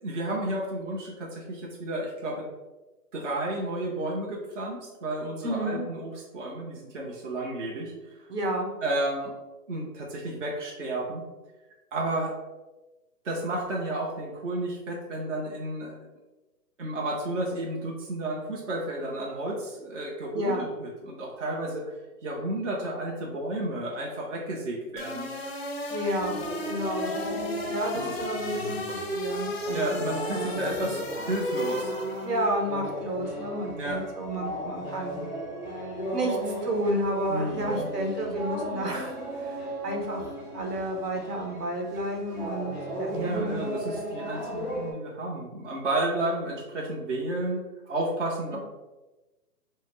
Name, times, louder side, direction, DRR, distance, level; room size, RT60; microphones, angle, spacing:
voice 1, 0.0-2.5 3.1-7.9 8.8-9.3 9.7-11.2 11.9-12.3 13.2-15.9 16.8-22.0 22.2-25.3 27.9-28.1 29.7-31.9 33.8-34.0 37.3-37.9 43.1-48.6, right 1 dB, 50° right, -3 dB, 0.8 m, -32 dB
voice 2, 5.4-5.8 8.3-8.7 20.3-20.7 25.9-26.4 26.6-27.1 27.7-30.0 30.3-30.9 32.2-35.2 36.1-36.4 36.6-39.1 39.4-39.5 39.8-42.7 43.0-43.6, right 1 dB, 75° right, 1 dB, 1.1 m, -31 dB
sound 1, 25.0-32.4, left 1 dB, 45° left, 0.4 m, -34 dB
sound 2, 26.2-44.9, equal, 5° right, 0.7 m, -36 dB
4.0 x 2.1 x 3.8 m, 1.1 s
hypercardioid pair, 170°, 47 cm